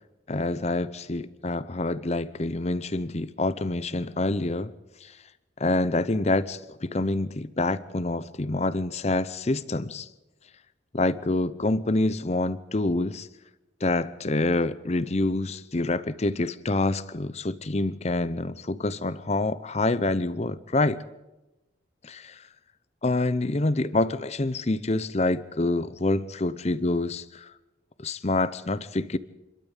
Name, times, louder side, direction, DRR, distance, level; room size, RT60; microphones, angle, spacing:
voice 1, 0.3-4.7 5.0-5.1 5.6-10.1 10.9-13.3 13.8-21.0 22.0-22.4 23.0-27.5 28.0-29.2, left 2 dB, 35° left, 0.8 m, -27 dB
27.0 x 12.5 x 8.2 m
head